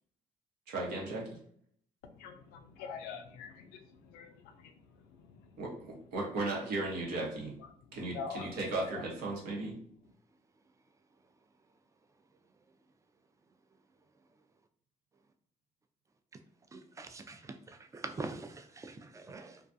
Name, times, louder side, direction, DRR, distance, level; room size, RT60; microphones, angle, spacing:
voice 1, 0.7-1.2 5.6-7.5 7.9-9.7, right 2 dB, 85° right, -2 dB, 0.9 m, -36 dB
voice 2, 2.0-4.7 5.3-5.4 8.1-8.5 8.9-9.0, left 6 dB, 90° left, 6 dB, 0.4 m, -45 dB
voice 3, 16.7-19.6, right 3 dB, 20° right, 8 dB, 0.4 m, -44 dB
2.3 x 2.3 x 2.6 m, 0.64 s
supercardioid pair, 65°, 16 cm